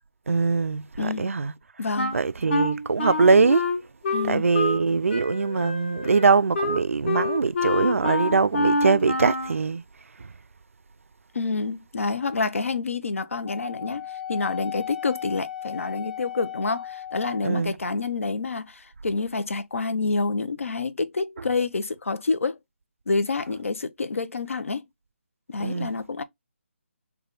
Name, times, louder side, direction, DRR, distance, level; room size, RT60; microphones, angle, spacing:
voice 1, 0.3-1.5 2.1-3.7 4.2-9.8 10.2-10.3 17.4-17.8 25.6-25.9, right 4 dB, 85° right, 0.3 m, -22 dB
voice 2, 1.0-1.3 1.8-2.1 4.1-4.5 11.3-22.6 23.1-24.8 25.5-26.2, left 4 dB, 80° left, 0.6 m, -28 dB
Wind instrument woodwind instrument, 2.0-4.8 5.1-9.6, left 2 dB, 55° left, 1.0 m, -27 dB
Wind instrument woodwind instrument 2, 13.5-17.6, left 10 dB, 40° left, 0.7 m, -36 dB
3.4 x 2.2 x 3.9 m
figure-of-eight pair, 155°, 7 cm